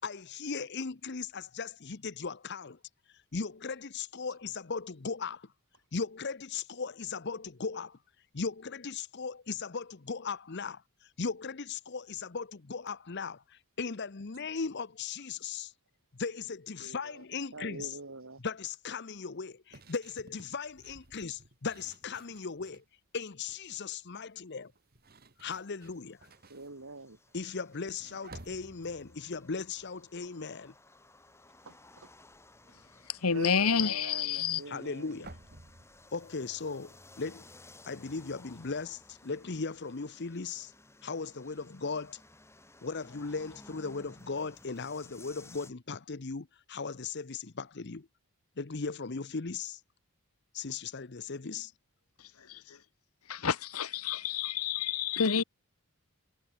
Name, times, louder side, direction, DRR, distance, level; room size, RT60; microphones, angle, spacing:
voice 1, 0.0-2.8 3.1-5.5 5.9-8.0 8.3-15.7 16.1-18.0 18.4-22.8 23.1-24.7 25.4-26.3 27.3-30.7 34.7-35.4 36.1-37.4 37.9-40.7 41.0-42.2 42.8-48.1 48.6-49.8 50.5-51.7, left 4 dB, 50° left, 0.8 m, -38 dB
voice 2, 16.8-17.2 17.5-18.4 26.5-27.2 31.7-32.1 33.3-35.2, right 3 dB, 65° right, 2.1 m, -44 dB
sound 1, 19.7-22.9 23.3-23.7 24.6-30.9 31.1-31.5 31.8-37.3, right 2 dB, 45° right, 2.6 m, -56 dB
sound 2, 25.8-45.7, left 2 dB, 10° left, 1.9 m, -57 dB
voice 3, 33.1-34.6 52.2-52.8 53.3-55.4, left 6 dB, 80° left, 1.2 m, -29 dB
head